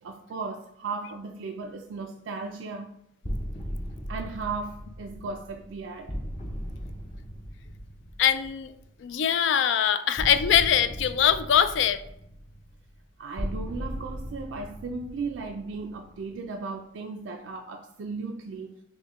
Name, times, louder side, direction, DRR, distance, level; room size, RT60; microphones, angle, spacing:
voice 1, 0.0-2.9 4.1-6.2 13.2-18.8, right 4 dB, 80° right, 0.4 m, -36 dB
sound 1, 3.2-9.0 10.2-16.4, equal, 30° left, 0.6 m, -38 dB
voice 2, 8.2-8.7 9.0-12.0, left 9 dB, 70° left, 0.3 m, -22 dB
6.2 x 2.2 x 3.1 m
head